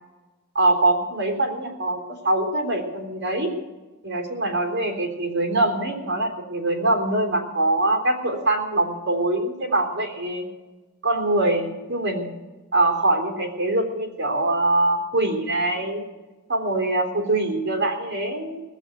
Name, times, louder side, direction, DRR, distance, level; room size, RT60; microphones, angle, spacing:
voice 1, 0.6-3.5 4.0-10.5 11.0-12.3 12.7-16.1 16.5-18.6, right 2 dB, 60° right, 2 dB, 3.5 m, -23 dB
18.5 x 8.1 x 9.0 m, 1.2 s
head